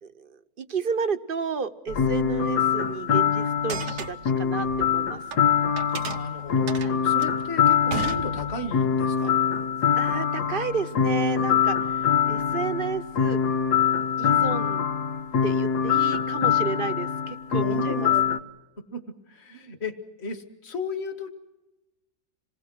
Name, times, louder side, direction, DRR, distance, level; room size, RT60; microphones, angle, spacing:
voice 1, 0.6-5.2 6.8-7.0 9.9-13.4 14.2-14.8 15.4-18.1, right 6 dB, 40° right, 10 dB, 0.9 m, -32 dB
sound 1, 1.9-18.4, left 8 dB, 85° left, 1.8 m, -24 dB
sound 2, 3.5-5.4 5.8-8.8, right 8 dB, 85° right, 1.5 m, -35 dB
voice 2, 6.1-9.3 17.5-18.2 18.8-19.0 19.3-21.3, left 2 dB, 40° left, 6 dB, 2.0 m, -35 dB
27.5 x 19.5 x 6.2 m, 1.0 s
omnidirectional pair, 1.7 m